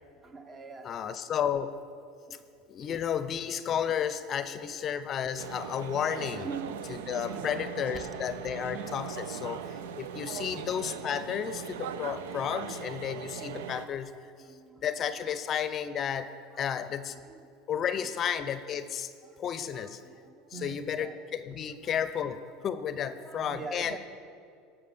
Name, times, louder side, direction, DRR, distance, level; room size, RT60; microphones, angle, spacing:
voice 1, 0.2-0.9 2.3-2.4 5.3-5.5 6.4-6.7 7.2-7.7 10.4-10.9 13.7-14.9 15.2-15.4 16.5-16.7 17.1-17.5 17.8-18.3 19.2-21.3 21.8-22.3 23.0-24.0, right 4 dB, 30° right, 7 dB, 1.1 m, -46 dB
voice 2, 0.8-1.8 2.7-6.5 7.1-14.1 14.8-16.3 16.6-17.1 17.7-19.1 19.4-20.0 20.6-23.9, left 8 dB, 40° left, 12 dB, 0.6 m, -32 dB
sound 1, 5.4-13.9, right 7 dB, 85° right, 0.5 m, -39 dB
13.0 x 5.6 x 7.0 m, 2.4 s
supercardioid pair, 100°, 0 cm